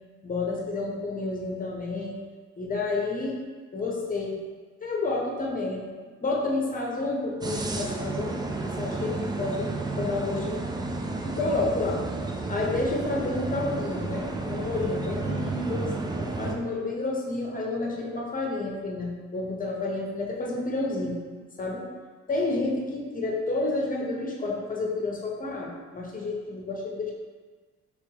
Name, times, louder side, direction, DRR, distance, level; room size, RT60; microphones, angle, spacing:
voice 1, 0.2-2.2 2.6-3.4 3.7-4.4 4.8-5.8 6.2-10.6 11.2-12.0 12.5-21.2 21.6-21.9 22.3-27.1, left 3 dB, 25° left, -2 dB, 0.9 m, -30 dB
sound 1, 7.4-16.6, right 3 dB, 15° right, 0.3 m, -32 dB
4.7 x 3.3 x 2.9 m, 1.4 s
cardioid pair, 90°, 30 cm